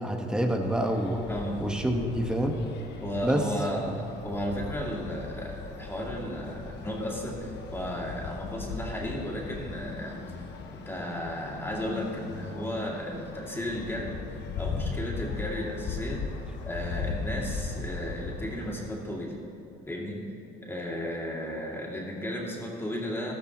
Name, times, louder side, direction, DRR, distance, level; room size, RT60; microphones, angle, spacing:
voice 1, 0.0-1.2 1.6-2.6 3.2-3.5 3.8-3.9, right 1 dB, 5° right, 3 dB, 1.3 m, -27 dB
sound 1, 0.6-18.9, left 4 dB, 75° left, 1.2 m, -38 dB
voice 2, 1.3-1.9 3.0-16.2 16.6-19.3 19.9-20.2 20.6-23.3, equal, 15° left, -3 dB, 2.5 m, -34 dB
13.5 x 13.5 x 3.0 m, 2.9 s
supercardioid pair, 80°, 18 cm